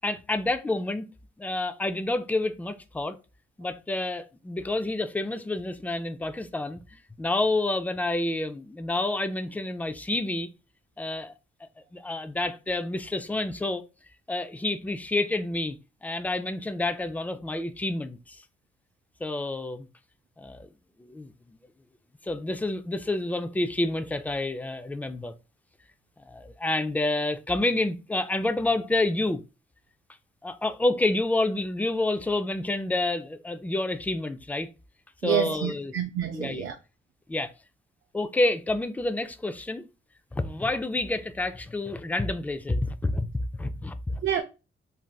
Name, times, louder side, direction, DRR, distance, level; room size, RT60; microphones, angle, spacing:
voice 1, 0.0-1.1 1.4-3.2 3.6-10.5 11.0-11.3 11.6-13.8 14.3-15.8 16.0-18.4 19.2-19.9 20.4-20.7 21.0-21.6 22.2-25.3 26.3-29.4 30.4-34.7 35.2-35.9 36.3-36.7 37.3-37.5 38.1-39.9 40.3-43.3 43.6-44.2, left 2 dB, 10° left, 0.3 m, -29 dB
voice 2, 35.2-36.8 44.2-44.4, right 10 dB, 70° right, 0.4 m, -28 dB
3.2 x 2.6 x 2.2 m
cardioid pair, 75°, 21 cm